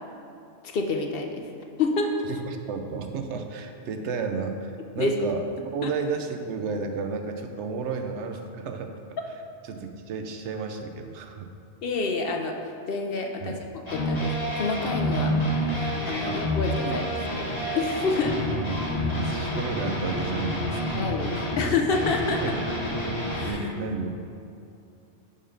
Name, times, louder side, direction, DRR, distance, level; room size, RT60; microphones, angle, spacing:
voice 1, 0.6-1.5 1.8-2.1 5.0-5.1 5.8-5.9 11.8-17.0 17.4-17.5 17.7-18.4 20.9-22.4 23.3-23.7, left 4 dB, 60° left, 3 dB, 0.8 m, -28 dB
voice 2, 2.3-5.4 5.7-9.2 9.7-11.5 13.4-13.6 16.3-16.4 16.8-17.5 18.5-18.9 19.1-21.0 22.4-22.7 23.4-24.1, right 5 dB, 80° right, 5 dB, 0.9 m, -32 dB
sound 1, 13.9-23.5, equal, 25° left, 1.2 m, -28 dB
5.4 x 5.4 x 5.1 m, 2.7 s
omnidirectional pair, 1.2 m